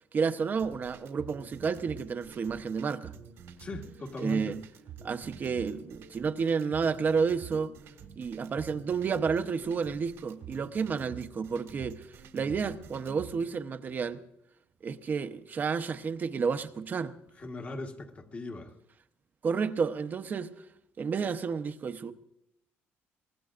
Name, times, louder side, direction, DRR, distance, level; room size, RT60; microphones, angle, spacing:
voice 1, 0.1-3.1 4.2-4.6 5.0-7.8 8.2-14.2 14.8-17.1 19.4-20.6 21.0-22.1, right 5 dB, 40° right, 0.8 m, -31 dB
sound 1, 0.6-13.5, right 7 dB, 80° right, 2.0 m, -48 dB
voice 2, 3.6-4.6 17.4-18.7, left 2 dB, 30° left, 1.5 m, -39 dB
24.0 x 18.5 x 2.5 m
cardioid pair, 110°, 5 cm